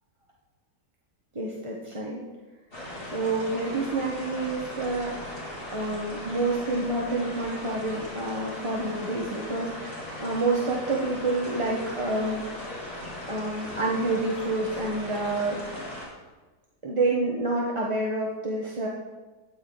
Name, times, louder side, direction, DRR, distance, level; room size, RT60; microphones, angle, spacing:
voice 1, 1.3-2.2 3.1-5.3 5.7-12.4 13.3-15.6 16.8-18.9, right 2 dB, 20° right, -3 dB, 1.0 m, -28 dB
sound 1, 2.7-16.1, left 1 dB, 35° left, 3.4 m, -38 dB
13.0 x 9.3 x 3.9 m, 1.2 s
omnidirectional pair, 1.8 m